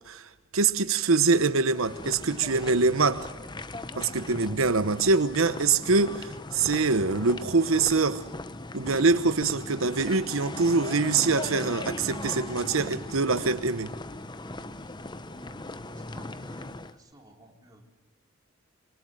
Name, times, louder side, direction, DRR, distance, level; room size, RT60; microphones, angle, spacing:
voice 1, 0.1-3.3 4.0-8.3 8.7-13.9, right 4 dB, 85° right, 1.0 m, -24 dB
sound 1, 1.7-16.9, left 2 dB, 20° left, 0.9 m, -39 dB
voice 2, 15.3-17.8, right 1 dB, 20° right, 4.1 m, -54 dB
27.0 x 24.0 x 8.0 m
head